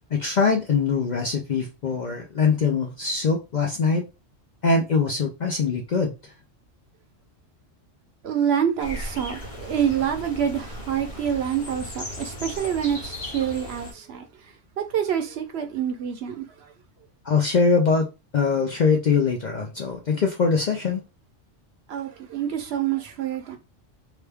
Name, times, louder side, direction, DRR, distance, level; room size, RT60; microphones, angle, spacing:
voice 1, 0.1-4.0 4.6-6.3 17.2-18.1 18.3-21.0, left 5 dB, 55° left, 0.5 m, -22 dB
voice 2, 8.2-14.2 14.8-16.4 21.9-23.6, right 9 dB, 65° right, 0.8 m, -26 dB
sound 1, 8.8-13.9, left 1 dB, 40° left, 1.0 m, -37 dB
2.9 x 2.2 x 3.3 m
omnidirectional pair, 1.2 m